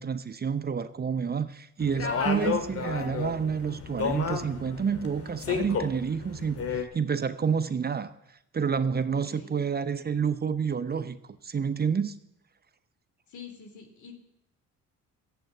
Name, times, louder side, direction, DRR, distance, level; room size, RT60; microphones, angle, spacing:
voice 1, 0.0-8.1 8.5-11.2 11.4-12.1, right 6 dB, 30° right, 0.8 m, -29 dB
sound 1, 1.8-6.8, left 6 dB, 50° left, 1.9 m, -32 dB
voice 2, 9.1-9.5 13.3-14.1, left 6 dB, 75° left, 3.0 m, -46 dB
14.5 x 7.8 x 8.9 m
cardioid pair, 90°, 30 cm